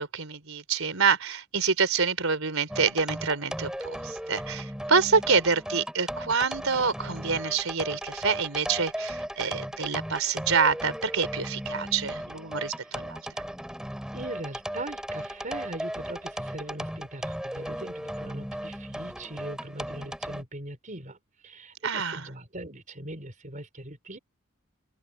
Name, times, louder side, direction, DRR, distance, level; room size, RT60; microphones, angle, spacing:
voice 1, 0.0-13.2 21.8-22.3, right 5 dB, 75° right, 4.2 m, -27 dB
sound 1, 2.7-20.4, equal, 5° right, 5.5 m, -36 dB
voice 2, 14.1-21.2 21.4-24.2, right 1 dB, 40° right, 4.2 m, -40 dB
open air
head